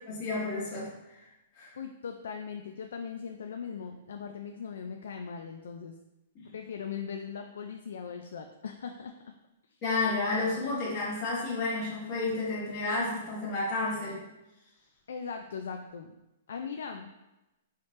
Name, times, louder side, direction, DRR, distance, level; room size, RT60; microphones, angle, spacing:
voice 1, 0.1-1.2 1.6-1.7 6.3-6.4 9.8-14.2, left 3 dB, 30° left, -7 dB, 1.3 m, -31 dB
voice 2, 1.8-6.0 6.5-9.1 15.1-16.1 16.5-17.1, left 6 dB, 80° left, 4 dB, 0.3 m, -39 dB
4.9 x 2.9 x 3.1 m, 0.97 s
hypercardioid pair, 175°, 0 cm